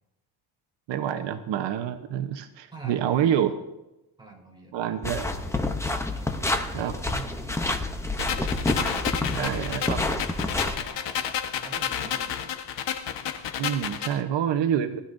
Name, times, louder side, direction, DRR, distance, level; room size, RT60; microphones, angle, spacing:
voice 1, 0.9-3.5 4.7-5.3 6.7-6.9 9.3-10.0 13.5-15.0, right 9 dB, 80° right, 7 dB, 1.0 m, -27 dB
voice 2, 2.7-3.6 4.2-5.5 6.1-8.5 8.8-11.2 11.5-12.6, right 2 dB, 10° right, -2 dB, 3.7 m, -47 dB
sound 1, 5.0-10.8, left 2 dB, 5° left, 0.7 m, -28 dB
sound 2, 8.2-14.2, left 9 dB, 80° left, 1.3 m, -31 dB
19.5 x 13.0 x 2.6 m, 0.95 s
cardioid pair, 175°, 43 cm